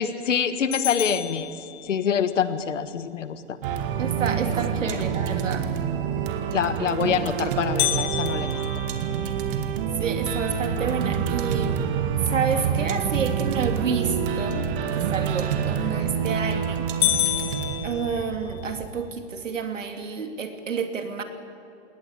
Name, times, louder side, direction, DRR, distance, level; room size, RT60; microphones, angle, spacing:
voice 1, 0.0-1.6 1.8-3.6 4.5-4.6 4.9-5.0 6.5-8.5, left 7 dB, 75° left, 12 dB, 1.7 m, -26 dB
sound 1, 0.7-2.3 7.8-9.9 10.5-10.6 11.1-11.2 11.8-12.1 15.7-16.2 16.5-16.6 17.0-18.7, left 14 dB, 40° left, 1.9 m, -29 dB
sound 2, 3.6-18.9, right 7 dB, 45° right, 2.1 m, -27 dB
voice 2, 4.0-5.7 10.0-11.8 12.3-16.9 17.8-21.2, right 6 dB, 85° right, 6 dB, 2.9 m, -29 dB
20.0 x 18.5 x 8.9 m, 2.5 s
hypercardioid pair, 140°, 37 cm